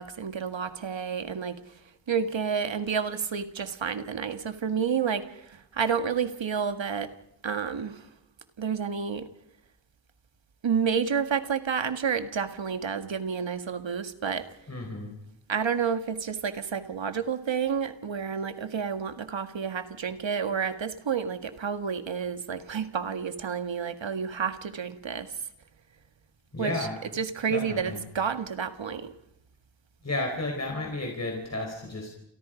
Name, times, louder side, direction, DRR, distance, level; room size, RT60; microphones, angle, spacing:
voice 1, 0.0-1.6 2.1-7.1 7.4-8.0 8.6-9.3 10.6-14.4 15.5-25.3 26.6-26.9 27.1-29.1, right 6 dB, 75° right, 9 dB, 1.8 m, -30 dB
voice 2, 14.7-15.1 26.5-26.9 27.5-28.0 30.0-32.1, left 2 dB, 35° left, 1 dB, 4.5 m, -32 dB
30.0 x 28.5 x 5.2 m, 0.80 s
wide cardioid pair, 125°, 45 cm